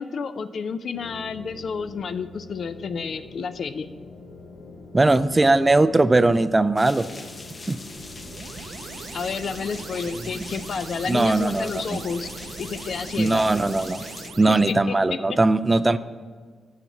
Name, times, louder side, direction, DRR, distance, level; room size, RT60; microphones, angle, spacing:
voice 1, 0.0-3.9 9.1-12.3 12.6-13.4 14.5-15.2, left 5 dB, 65° left, 12 dB, 0.4 m, -30 dB
sound 1, 0.9-14.9, left 3 dB, 85° left, 1.0 m, -44 dB
voice 2, 4.9-7.1 7.7-7.8 10.3-10.4 11.1-12.0 13.2-14.0 14.4-16.0, right 2 dB, 20° right, 14 dB, 0.3 m, -19 dB
sound 2, 6.8-14.3, left 2 dB, 35° left, 0.8 m, -42 dB
sound 3, 7.9-14.7, right 6 dB, 85° right, 0.4 m, -41 dB
6.9 x 5.8 x 7.1 m, 1.5 s
cardioid pair, 85°, 0 cm